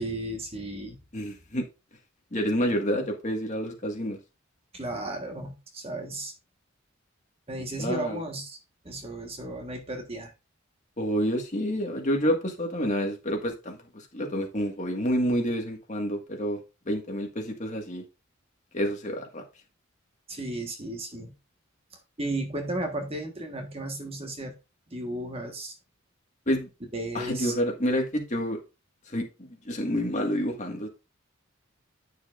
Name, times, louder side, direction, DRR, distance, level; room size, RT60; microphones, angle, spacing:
voice 1, 0.0-1.0 4.7-6.3 7.5-8.6 8.8-10.3 20.3-21.3 21.9-24.5 24.9-25.8 26.9-27.5, right 1 dB, 30° right, 1.5 m, -34 dB
voice 2, 1.1-1.6 2.3-4.2 7.8-8.2 11.0-16.6 16.9-18.0 18.7-19.4 26.5-26.7 27.1-28.6 29.1-30.9, equal, 35° left, 1.8 m, -28 dB
10.0 x 6.4 x 2.5 m
head